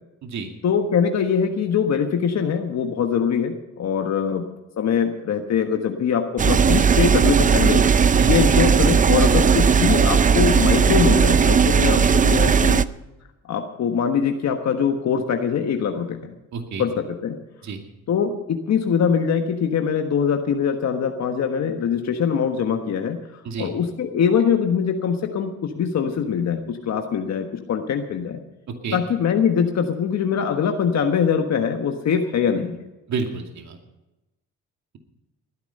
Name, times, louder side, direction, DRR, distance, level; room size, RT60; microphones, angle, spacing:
voice 1, 0.6-4.5 4.8-7.8 8.2-12.8 13.5-16.3 16.8-17.4 18.1-28.4 28.9-32.8, left 7 dB, 60° left, 4 dB, 1.4 m, -23 dB
sound 1, 6.4-12.8, right 6 dB, 25° right, 0.5 m, -17 dB
voice 2, 16.5-16.8 17.6-17.8 23.4-23.7 28.8-29.0 33.1-33.8, right 5 dB, 65° right, 4 dB, 2.5 m, -29 dB
19.5 x 10.5 x 5.4 m, 1.0 s
cardioid pair, 90°, 30 cm